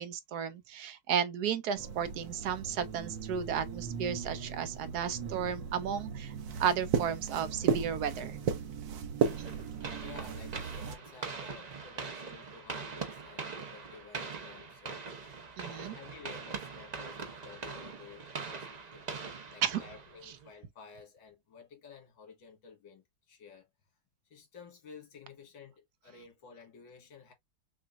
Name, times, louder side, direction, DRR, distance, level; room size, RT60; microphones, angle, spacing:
voice 1, 0.0-6.3 6.6-8.4 9.4-9.5 15.6-15.9 19.3-19.8, right 8 dB, 70° right, 1.1 m, -33 dB
sound 1, 1.8-11.0, right 6 dB, 85° right, 1.5 m, -36 dB
sound 2, 9.2-20.5, right 4 dB, 55° right, 0.4 m, -42 dB
voice 2, 10.0-23.7 24.3-27.3, left 6 dB, 90° left, 2.3 m, -53 dB
5.9 x 2.5 x 2.5 m
omnidirectional pair, 1.9 m